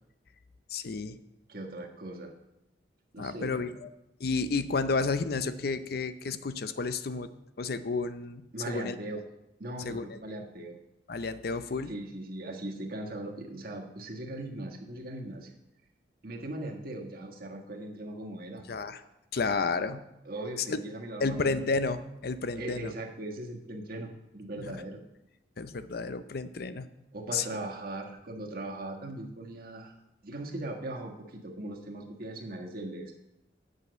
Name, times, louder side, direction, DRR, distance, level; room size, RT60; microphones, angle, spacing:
voice 1, 0.7-1.2 3.2-3.9 4.2-7.3 7.6-9.0 9.8-10.1 11.1-11.9 18.7-19.0 19.3-20.0 20.6-20.8 21.2-22.9 24.7-24.8 25.6-26.9 27.3-27.5, left 4 dB, 60° left, 12 dB, 0.6 m, -31 dB
voice 2, 1.5-2.3 3.1-3.7 8.5-9.2 9.6-10.8 11.9-15.5 16.2-18.6 20.2-21.7 22.6-25.0 27.1-30.0 30.2-33.1, right 1 dB, 55° right, 1 dB, 1.5 m, -39 dB
8.2 x 6.2 x 7.9 m, 0.89 s
head